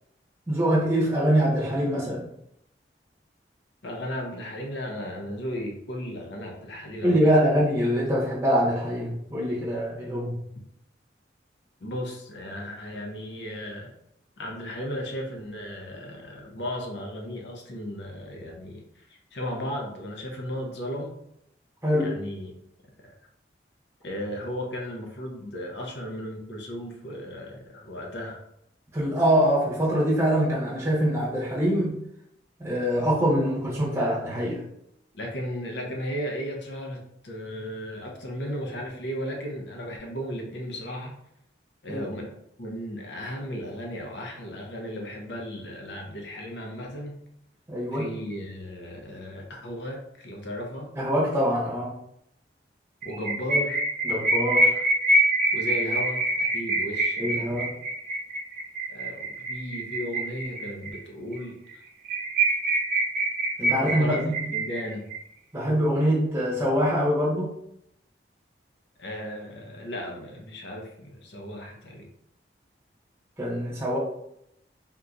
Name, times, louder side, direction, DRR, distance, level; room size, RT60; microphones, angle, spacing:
voice 1, 0.5-2.2 7.0-10.4 21.8-22.2 28.9-32.0 32.6-34.6 41.9-42.0 47.7-48.1 50.9-51.9 54.1-54.7 57.2-57.7 63.6-64.3 65.5-67.5 73.4-74.0, equal, 15° right, -7 dB, 1.1 m, -24 dB
voice 2, 3.8-7.3 11.8-13.9 14.4-21.2 22.0-22.5 23.0-23.1 24.0-28.4 35.1-41.1 41.8-47.2 47.9-50.9 53.0-53.8 55.5-57.7 58.9-61.8 63.8-65.1 69.0-72.1, equal, 75° left, 0 dB, 0.7 m, -35 dB
sound 1, 53.0-61.0 61.3-61.4 61.7-61.8 62.0-65.2, right 1 dB, 50° right, 0.8 m, -25 dB
3.7 x 2.8 x 2.5 m, 0.78 s
head